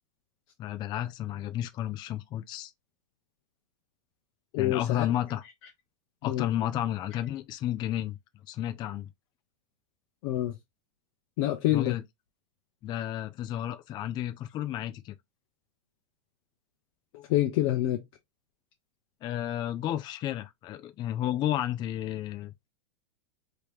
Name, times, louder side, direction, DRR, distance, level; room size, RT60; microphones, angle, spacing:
voice 1, 0.6-2.7 4.6-5.4 6.2-8.2 8.5-9.1 11.7-12.0 12.8-15.2 19.2-22.5, left 12 dB, 25° left, 0.4 m, -32 dB
voice 2, 4.5-5.1 6.2-6.5 10.2-10.6 11.4-11.9 17.1-18.0, left 14 dB, 55° left, 0.7 m, -27 dB
3.0 x 2.8 x 3.3 m
supercardioid pair, 140°, 18 cm